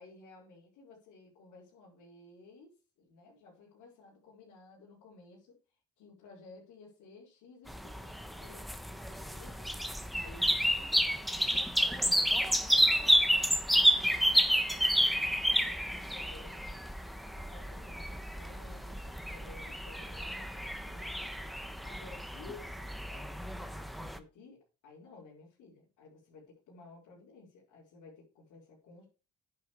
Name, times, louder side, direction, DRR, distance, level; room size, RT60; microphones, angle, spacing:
voice 1, 0.0-5.6 6.0-8.7 9.1-9.7 10.1-16.8 17.3-21.1 21.8-29.1, left 3 dB, 90° left, -8 dB, 5.1 m, -55 dB
sound 1, 7.7-24.2, equal, ahead, 1.1 m, -30 dB
10.5 x 6.6 x 5.0 m, 0.33 s
cardioid pair, 90°, 30 cm